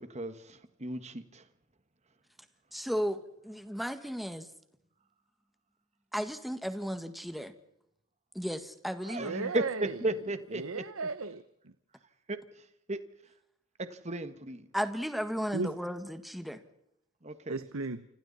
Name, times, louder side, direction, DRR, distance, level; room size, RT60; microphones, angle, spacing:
voice 1, 0.0-1.4 9.0-10.8 12.3-13.0 13.8-14.7 17.2-17.6, right 2 dB, 35° right, 1.6 m, -35 dB
voice 2, 2.7-4.5 6.1-7.5 8.3-9.5 14.7-16.6, equal, ahead, 1.6 m, -35 dB
voice 3, 9.2-10.0 10.5-11.7 15.5-15.7 17.5-18.1, right 3 dB, 85° right, 1.0 m, -35 dB
29.0 x 26.0 x 4.2 m
head